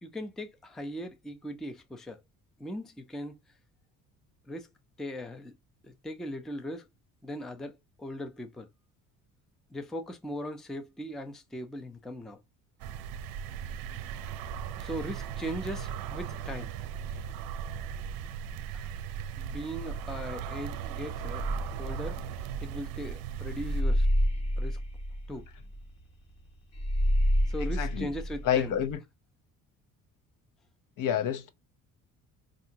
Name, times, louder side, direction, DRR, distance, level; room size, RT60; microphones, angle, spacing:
voice 1, 0.0-2.2 2.6-3.4 4.5-4.7 5.0-5.5 5.8-6.9 7.2-8.7 9.7-12.4 14.8-16.7 18.7-18.9 19.4-21.4 21.8-22.2 22.6-24.1 24.6-24.8 25.3-25.5 27.5-28.7, equal, ahead, 0.4 m, -39 dB
sound 1, 12.8-23.8, right 8 dB, 80° right, 0.5 m, -37 dB
sound 2, 21.4-28.9, equal, 45° left, 1.2 m, -29 dB
voice 2, 27.8-28.1 28.4-29.0 31.0-31.5, left 9 dB, 65° left, 0.8 m, -28 dB
4.6 x 2.6 x 2.7 m
cardioid pair, 130°, 34 cm